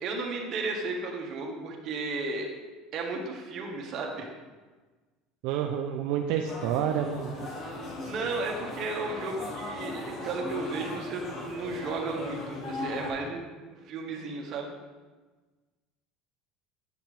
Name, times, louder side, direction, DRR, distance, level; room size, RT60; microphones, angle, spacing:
voice 1, 0.0-2.5 2.9-4.3 8.0-13.4 13.7-14.7, right 3 dB, 50° right, 0 dB, 1.5 m, -34 dB
voice 2, 5.4-7.3, right 8 dB, 75° right, 4 dB, 0.5 m, -29 dB
sound 1, 6.4-13.1, left 2 dB, 40° left, 1.7 m, -38 dB
8.6 x 5.8 x 3.4 m, 1.3 s
supercardioid pair, 110°, 0 cm